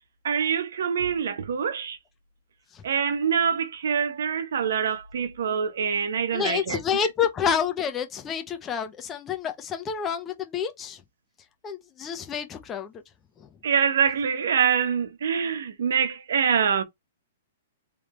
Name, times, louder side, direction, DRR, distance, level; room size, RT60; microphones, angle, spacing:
voice 1, 0.2-2.0 2.8-6.8 13.6-16.8, right 7 dB, 75° right, 1.1 m, -25 dB
voice 2, 6.3-11.0 11.6-12.9, left 7 dB, 20° left, 1.0 m, -28 dB
3.6 x 3.5 x 3.2 m
hypercardioid pair, 145°, 0 cm